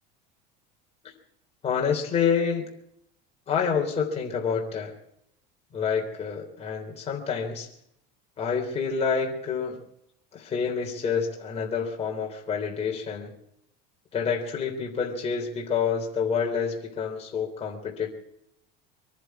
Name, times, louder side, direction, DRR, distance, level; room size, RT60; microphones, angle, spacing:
voice 1, 1.6-2.7 3.5-4.9 5.7-7.7 8.4-9.8 10.3-13.3 14.1-18.1, left 6 dB, 30° left, 0 dB, 3.6 m, -28 dB
24.5 x 11.0 x 4.8 m, 0.75 s
supercardioid pair, 120°, 21 cm